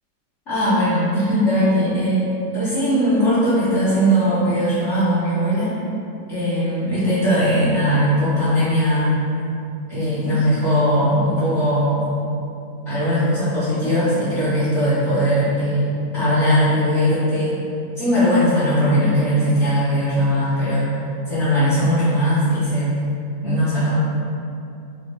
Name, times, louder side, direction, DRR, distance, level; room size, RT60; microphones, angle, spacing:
voice 1, 0.5-5.8 6.3-9.2 9.9-12.1 12.9-15.9 16.1-17.6 18.0-21.0 21.3-23.0 23.4-23.9, equal, 50° left, -14 dB, 1.0 m, -19 dB
3.5 x 2.5 x 3.0 m, 2.7 s
omnidirectional pair, 2.0 m